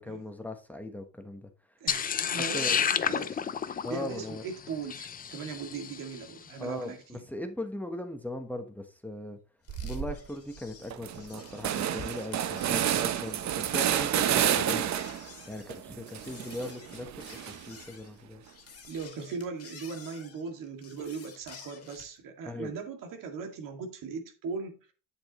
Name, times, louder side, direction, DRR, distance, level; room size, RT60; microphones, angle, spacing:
voice 1, 0.0-1.5 2.5-2.8 3.8-4.4 6.6-9.4 9.8-14.9 15.5-17.1 17.5-18.4 22.4-22.7, left 1 dB, 5° left, 1.0 m, -39 dB
voice 2, 1.8-7.2 18.9-24.9, right 5 dB, 75° right, 2.1 m, -39 dB
sound 1, 1.9-6.2, left 7 dB, 25° left, 0.5 m, -31 dB
sound 2, 9.6-22.2, left 5 dB, 45° left, 2.1 m, -51 dB
sound 3, 9.7-10.2 10.6-10.7 10.9-15.3 15.7-17.8, right 10 dB, 60° right, 0.9 m, -30 dB
8.7 x 7.8 x 3.0 m
cardioid pair, 125°, 32 cm